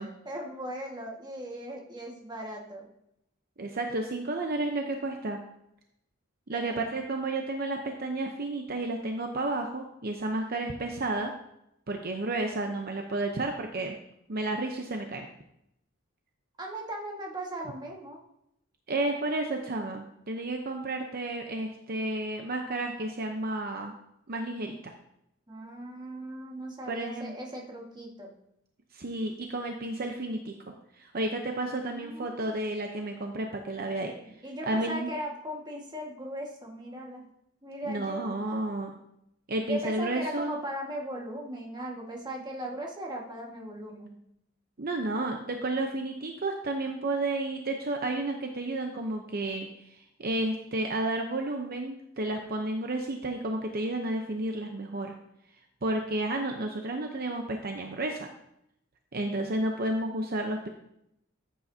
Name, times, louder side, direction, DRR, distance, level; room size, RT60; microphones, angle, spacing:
voice 1, 0.2-2.9 6.5-6.9 16.6-18.2 25.5-28.3 31.8-32.5 34.4-37.2 37.6-38.2 39.7-44.1, right 1 dB, 20° right, -1 dB, 1.7 m, -38 dB
voice 2, 3.6-5.4 6.5-11.3 11.9-14.0 14.3-15.3 18.9-23.9 24.3-24.9 26.9-27.3 28.9-30.5 31.0-34.1 34.6-35.1 37.8-39.0 39.5-40.6 44.8-55.1 55.8-58.3 59.1-60.7, right 2 dB, 50° right, 3 dB, 0.8 m, -31 dB
14.0 x 8.4 x 2.8 m, 0.79 s
head